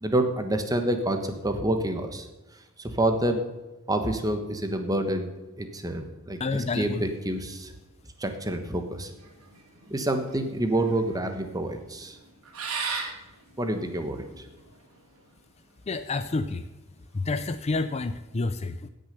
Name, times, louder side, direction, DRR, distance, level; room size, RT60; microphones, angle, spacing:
voice 1, 0.0-2.3 2.8-3.4 3.9-5.3 5.6-7.7 8.2-9.1 9.9-12.2 13.6-14.4, right 1 dB, 15° right, 6 dB, 1.2 m, -28 dB
voice 2, 6.4-7.0 15.9-16.6 17.1-18.9, left 3 dB, 30° left, 11 dB, 0.4 m, -29 dB
sound 1, 9.2-15.0, right 5 dB, 85° right, 2.6 m, -37 dB
16.5 x 6.5 x 6.7 m, 1.0 s
head